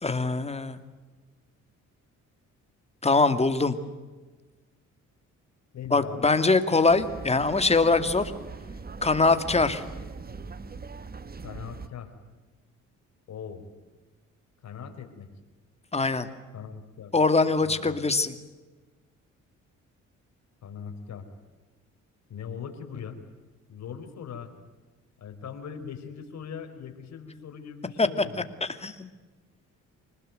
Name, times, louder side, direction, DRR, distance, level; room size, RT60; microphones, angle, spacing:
voice 1, 0.0-0.8 3.0-3.8 5.9-8.3 9.0-9.8 15.9-16.3 17.1-18.4 28.0-28.1 28.6-29.1, left 3 dB, 20° left, 9 dB, 2.3 m, -23 dB
voice 2, 5.7-6.4 11.4-12.1 13.3-13.7 14.6-15.3 16.5-17.1 17.6-18.0 20.6-21.2 22.3-23.2 23.7-24.5 25.2-28.4, left 7 dB, 60° left, 7 dB, 4.3 m, -40 dB
sound 1, 6.9-11.9, right 4 dB, 30° right, 1.5 m, -41 dB
26.0 x 20.0 x 9.2 m, 1.2 s
cardioid pair, 90°, 30 cm